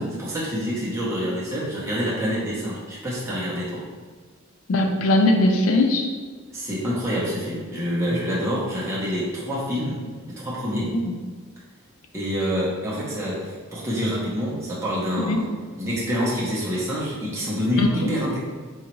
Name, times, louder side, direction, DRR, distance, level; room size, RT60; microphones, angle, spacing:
voice 1, 0.0-3.8 6.5-10.0 10.3-10.9 12.1-15.5 15.7-18.4, equal, 15° right, -8 dB, 0.7 m, -27 dB
voice 2, 4.7-6.1 10.9-11.1 15.2-15.4 17.8-18.1, left 2 dB, 80° left, 4 dB, 0.4 m, -20 dB
3.9 x 2.3 x 3.0 m, 1.5 s
head